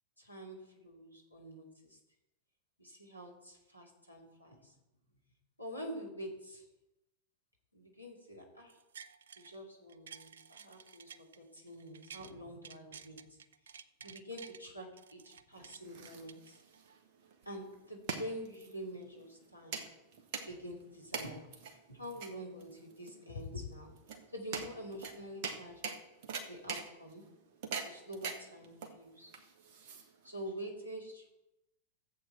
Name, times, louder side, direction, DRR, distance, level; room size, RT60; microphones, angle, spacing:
voice 1, 0.2-2.0 2.8-4.7 5.6-6.6 7.7-8.8 9.4-13.4 13.7-16.6 17.5-19.8 20.4-25.9 26.5-27.2 27.8-29.3 30.2-31.3, equal, 90° left, -1 dB, 2.4 m, -46 dB
sound 1, 8.7-9.6 9.9-12.3 12.6-14.6 15.0-17.0 17.4-17.5, right 7 dB, 65° right, 0.4 m, -53 dB
sound 2, 15.5-30.4, right 5 dB, 50° right, 1.5 m, -44 dB
14.0 x 8.0 x 4.5 m, 0.94 s
figure-of-eight pair, 90°, 0 cm